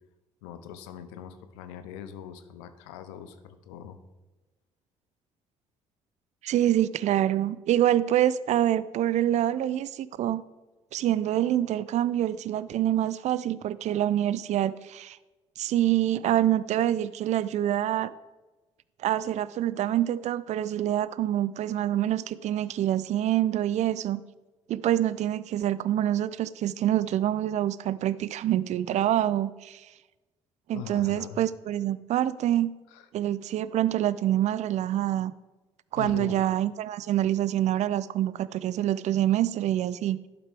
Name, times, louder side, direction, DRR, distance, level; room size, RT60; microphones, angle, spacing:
voice 1, 0.4-4.0 30.7-31.4 32.9-33.1 36.0-36.4, left 9 dB, 75° left, 10 dB, 0.7 m, -41 dB
voice 2, 6.4-10.4 10.9-15.2 15.6-18.1 19.0-24.2 24.7-29.8 30.7-32.7 33.1-35.3 35.9-40.2, right 12 dB, 55° right, 18 dB, 0.4 m, -26 dB
11.0 x 5.9 x 3.4 m, 1.2 s
hypercardioid pair, 50°, 15 cm